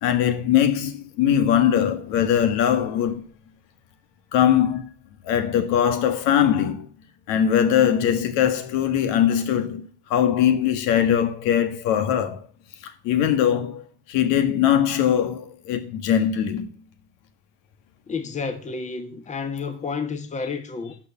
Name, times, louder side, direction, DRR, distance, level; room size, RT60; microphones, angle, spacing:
voice 1, 0.0-3.3 4.3-4.9 5.2-6.9 7.3-12.4 12.8-16.8, left 9 dB, 70° left, 1.7 m, -21 dB
voice 2, 18.1-21.0, left 5 dB, 20° left, 1.4 m, -30 dB
12.0 x 4.8 x 7.1 m
supercardioid pair, 120°, 33 cm